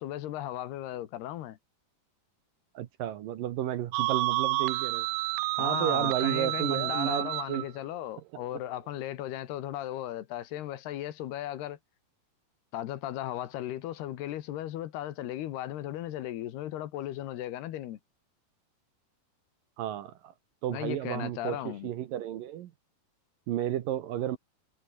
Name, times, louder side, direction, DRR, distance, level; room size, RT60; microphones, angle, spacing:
voice 1, 0.0-1.6 5.6-11.8 12.7-18.0 20.7-21.9, left 13 dB, 75° left, 3.4 m, -36 dB
voice 2, 2.7-5.1 5.6-7.7 8.5-8.6 19.8-20.3 20.6-22.7 23.5-24.4, right 12 dB, 70° right, 2.5 m, -32 dB
sound 1, 3.9-7.6, right 21 dB, 85° right, 2.7 m, -30 dB
omnidirectional pair, 4.8 m